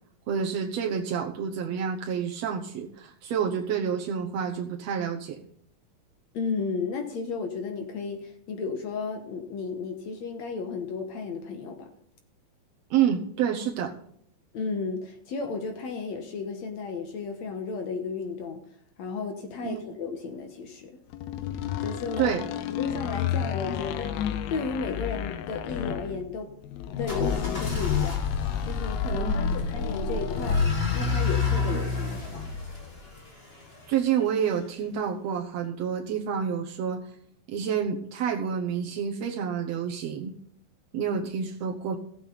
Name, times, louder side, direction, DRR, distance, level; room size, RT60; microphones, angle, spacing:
voice 1, 0.3-5.4 12.9-13.9 19.6-19.8 22.2-22.4 29.1-29.8 33.9-37.0 37.5-40.3 40.9-42.0, right 7 dB, 85° right, 1 dB, 1.4 m, -28 dB
voice 2, 6.3-11.9 14.5-18.6 19.0-20.9 21.8-22.4 22.7-26.5 26.9-28.2 28.6-30.6 30.9-32.5, left 4 dB, 65° left, 5 dB, 1.8 m, -33 dB
sound 1, 21.1-31.9, left 10 dB, 80° left, 2.5 m, -32 dB
sound 2, 27.0-33.9, left 4 dB, 25° left, 1.2 m, -29 dB
15.5 x 7.9 x 4.0 m, 0.68 s
omnidirectional pair, 4.5 m